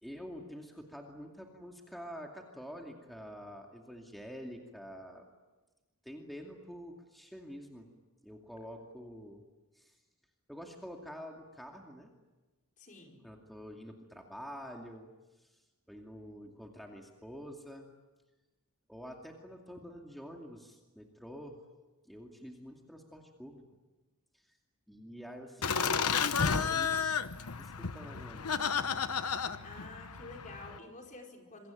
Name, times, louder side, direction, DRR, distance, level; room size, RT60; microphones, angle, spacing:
voice 1, 0.0-5.3 6.0-7.9 8.2-9.4 9.7-10.0 10.5-12.1 13.2-15.1 15.3-17.9 18.9-21.6 22.0-23.6 24.3-24.6 24.9-27.1 27.6-28.7, equal, ahead, 1 dB, 2.4 m, -47 dB
voice 2, 12.8-13.2 29.6-31.7, left 2 dB, 35° left, 2 dB, 4.9 m, -49 dB
Laughter, 25.6-30.8, left 6 dB, 85° left, 1.1 m, -32 dB
27.0 x 24.0 x 9.0 m, 1.2 s
head